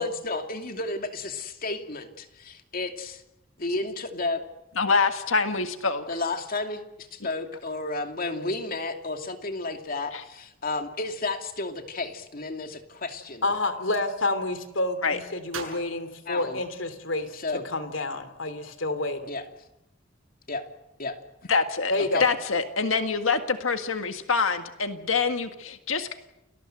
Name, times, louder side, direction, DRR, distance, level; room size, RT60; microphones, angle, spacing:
voice 1, 0.0-3.2 3.6-4.4 6.1-13.6 16.3-16.6 17.3-17.6 19.3-19.5 20.5-20.7 21.0-21.2 22.1-22.2, left 2 dB, 45° left, 5 dB, 2.6 m, -32 dB
voice 2, 4.8-6.0 10.1-10.2 15.0-15.2 21.5-21.9 22.2-26.1, left 4 dB, 90° left, 7 dB, 1.7 m, -25 dB
voice 3, 13.4-17.4 17.6-19.2 21.9-22.2, left 2 dB, 75° left, 11 dB, 3.0 m, -29 dB
Gunshot gunfire, 13.6-14.1 15.5-17.0, right 5 dB, 85° right, 7.2 m, -42 dB
30.0 x 20.5 x 7.9 m, 0.88 s
head